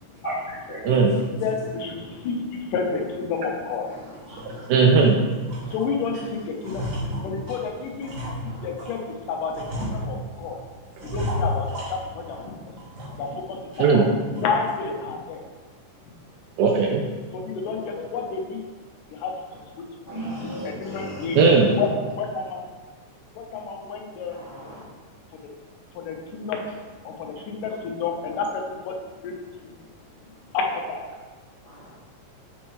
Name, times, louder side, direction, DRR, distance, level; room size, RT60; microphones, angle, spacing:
voice 1, 0.8-1.2 4.7-5.2 13.8-14.1 16.6-17.0 21.4-21.7, right 4 dB, 80° right, 0 dB, 1.9 m, -17 dB
voice 2, 1.4-3.9 5.7-6.8 7.2-8.1 8.4-10.6 11.1-12.7 13.2-15.4 17.3-18.6 19.1-19.3 19.8-19.9 20.4-21.4 21.8-21.9 22.2-22.7 23.4-24.4 25.9-26.6 27.1-29.0 29.2-29.3 29.6-29.7 30.5-31.0, left 5 dB, 90° left, 1 dB, 2.4 m, -30 dB
sound 1, 3.0-3.2 3.6-3.8 4.2-5.1 5.5-6.1 6.4-9.0 9.5-10.5 11.0-12.4 12.8-13.4 13.7-13.8 14.3-14.7, left 1 dB, 55° right, 1.4 m, -33 dB
voice 3, 4.3-4.6 5.6-5.7 8.4-8.7 20.1-21.6 24.3-24.8 31.7-31.9, right 1 dB, 55° left, -11 dB, 0.8 m, -36 dB
7.3 x 4.4 x 3.1 m, 1.3 s
omnidirectional pair, 3.6 m